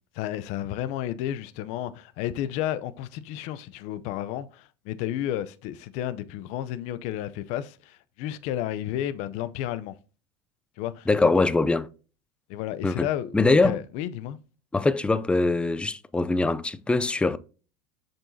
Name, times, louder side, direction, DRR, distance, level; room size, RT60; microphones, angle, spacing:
voice 1, 0.2-10.0 10.8-11.1 12.5-14.4, left 12 dB, 60° left, 0.6 m, -32 dB
voice 2, 11.1-11.9 12.8-13.1 13.3-13.8 14.7-17.4, left 3 dB, 10° left, 0.4 m, -22 dB
7.2 x 5.3 x 2.7 m
supercardioid pair, 105°, 13 cm